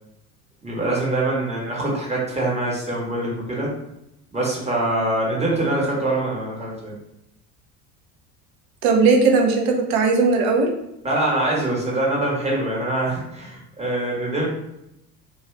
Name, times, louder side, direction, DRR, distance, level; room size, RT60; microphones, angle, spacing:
voice 1, 0.6-3.7 4.3-6.9 11.0-14.5, right 2 dB, 15° right, -4 dB, 1.1 m, -24 dB
voice 2, 8.8-10.7, right 4 dB, 55° right, 2 dB, 0.7 m, -18 dB
2.5 x 2.3 x 3.1 m, 0.85 s
hypercardioid pair, 75°, 45 cm